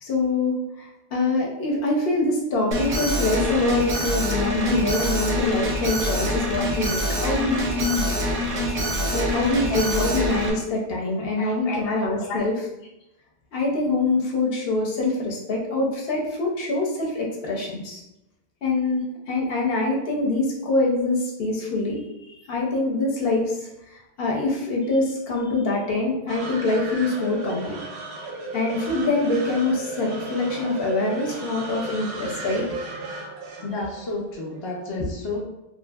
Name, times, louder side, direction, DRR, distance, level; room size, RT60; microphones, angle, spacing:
voice 1, 0.0-8.0 9.1-12.5 13.5-18.0 18.6-27.8 28.5-32.7 35.0-35.1, left 2 dB, 70° left, -2 dB, 0.8 m, -25 dB
Alarm, 2.7-10.5, equal, 50° right, 0.5 m, -25 dB
voice 2, 9.7-10.2 11.2-12.4 33.6-35.4, left 2 dB, 40° left, -2 dB, 0.4 m, -32 dB
sound 1, 26.3-34.7, right 3 dB, 90° right, 0.9 m, -35 dB
2.7 x 2.5 x 2.3 m, 0.91 s
omnidirectional pair, 1.1 m